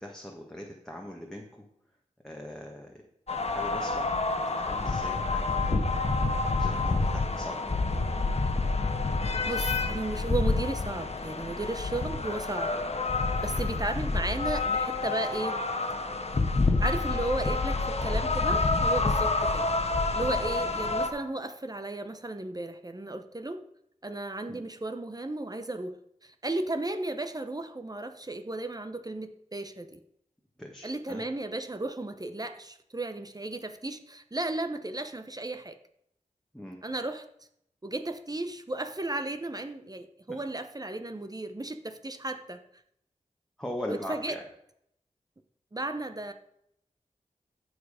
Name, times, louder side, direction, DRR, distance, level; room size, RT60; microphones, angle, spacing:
voice 1, 0.0-1.7 2.2-3.0 3.4-4.2 4.6-5.8 6.5-7.9 24.5-24.6 30.6-31.2 36.5-36.8 43.6-44.4, left 1 dB, 5° left, 0 dB, 1.6 m, -41 dB
sound 1, 3.3-21.1, left 3 dB, 50° left, 1.4 m, -28 dB
voice 2, 9.4-12.7 13.4-15.6 16.8-19.7 20.1-23.6 24.0-26.0 26.2-30.0 30.8-35.8 36.8-37.3 37.8-42.6 43.9-44.4 45.7-46.3, right 2 dB, 30° right, 8 dB, 0.9 m, -34 dB
14.5 x 4.8 x 5.0 m, 0.75 s
cardioid pair, 40°, 14 cm